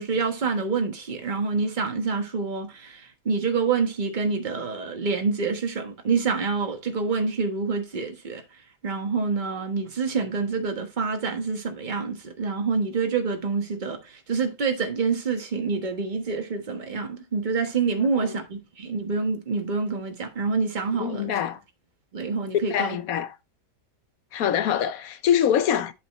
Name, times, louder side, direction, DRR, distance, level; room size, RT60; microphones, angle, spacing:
voice 1, 0.0-8.4 8.8-21.3 22.1-23.0, right 4 dB, 30° right, 1.3 m, -27 dB
voice 2, 21.0-21.6 22.7-23.3 24.3-25.9, left 9 dB, 65° left, 1.1 m, -24 dB
7.9 x 6.2 x 3.1 m
omnidirectional pair, 1.8 m